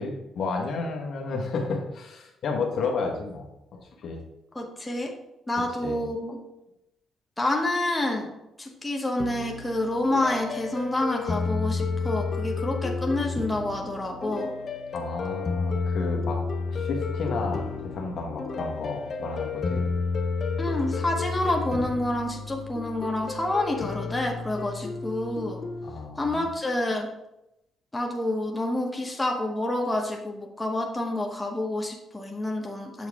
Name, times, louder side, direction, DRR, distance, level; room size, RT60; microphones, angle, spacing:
voice 1, 0.0-4.2 5.8-6.0 14.9-16.4 16.7-19.9 25.8-26.4, left 4 dB, 65° left, 1 dB, 1.3 m, -32 dB
voice 2, 4.5-5.1 5.5-6.4 7.4-8.3 8.6-14.5 20.6-25.6 26.2-27.1 27.9-33.1, left 1 dB, 10° left, 0 dB, 1.0 m, -28 dB
sound 1, 9.2-25.9, left 4 dB, 45° left, 0.7 m, -31 dB
7.2 x 4.6 x 3.5 m, 0.87 s
cardioid pair, 90°, 0 cm